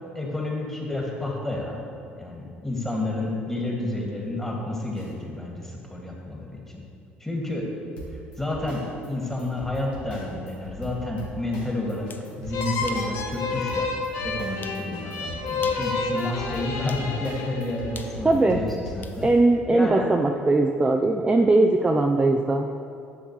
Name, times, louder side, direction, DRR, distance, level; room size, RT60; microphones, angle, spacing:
voice 1, 0.1-1.8 2.2-6.8 7.2-7.7 8.4-13.9 14.2-19.3 19.7-20.1 21.8-21.9, left 2 dB, 5° left, -1 dB, 2.0 m, -30 dB
sound 1, 4.9-5.1 8.0-19.4, equal, 75° left, 1.5 m, -40 dB
sound 2, 11.9-12.3 12.9-13.1 13.6-13.7 14.6-14.8 15.5-15.9 16.9-17.1 17.9-19.2, left 5 dB, 35° left, 0.6 m, -43 dB
sound 3, 12.5-18.0, left 4 dB, 55° left, 1.0 m, -30 dB
voice 2, 18.2-18.6 19.2-22.7, right 2 dB, 15° right, 2 dB, 0.5 m, -20 dB
11.5 x 7.2 x 3.1 m, 2.5 s
figure-of-eight pair, 55°, 6 cm